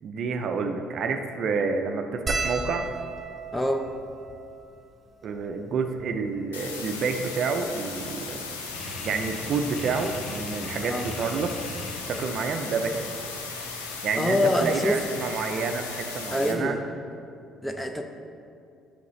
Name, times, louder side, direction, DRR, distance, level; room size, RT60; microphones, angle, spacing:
voice 1, 0.0-2.9 5.2-8.5 9.0-11.5 12.1-13.1 14.0-16.8, right 5 dB, 55° right, 6 dB, 0.5 m, -29 dB
sound 1, 2.3-6.9 7.6-7.7 7.9-8.1 9.4-9.6 11.0-11.1 11.4-11.6, right 3 dB, 25° right, 0.9 m, -36 dB
voice 2, 3.5-3.9 10.9-11.1 14.2-15.0 16.3-16.8 17.6-18.0, left 1 dB, 10° left, 5 dB, 0.7 m, -25 dB
sound 2, 6.5-16.5, left 4 dB, 90° left, 0.6 m, -37 dB
sound 3, 8.7-16.1, left 1 dB, 50° left, 1.2 m, -41 dB
8.3 x 5.7 x 3.2 m, 2.4 s
hypercardioid pair, 55°, 0 cm